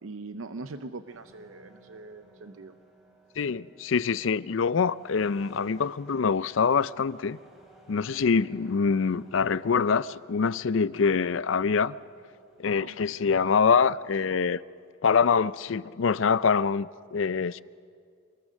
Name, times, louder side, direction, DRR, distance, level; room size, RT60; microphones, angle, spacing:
voice 1, 0.0-2.7 12.8-13.0, right 3 dB, 85° right, 0.7 m, -41 dB
sound 1, 1.1-14.9, right 1 dB, ahead, 3.9 m, -58 dB
voice 2, 3.4-7.4 7.9-12.0 12.6-14.6 15.0-17.6, left 5 dB, 70° left, 0.5 m, -25 dB
26.5 x 21.0 x 6.4 m
head